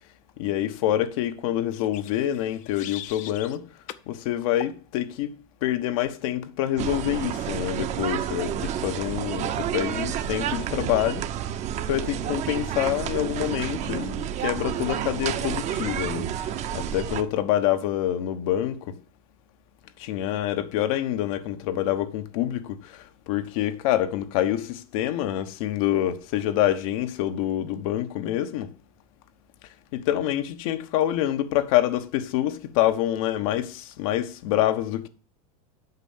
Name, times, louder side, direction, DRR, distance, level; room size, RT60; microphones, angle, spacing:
voice 1, 0.4-3.7 4.1-5.3 5.6-11.3 11.9-19.0 20.0-28.7 29.9-35.1, left 12 dB, 65° left, 1.1 m, -26 dB
sound 1, 1.7-3.6 3.9-4.1 4.6-4.8, left 13 dB, 40° left, 0.7 m, -40 dB
sound 2, 6.8-17.2, right 10 dB, 40° right, 0.8 m, -30 dB
8.1 x 5.4 x 7.2 m
supercardioid pair, 125°, 19 cm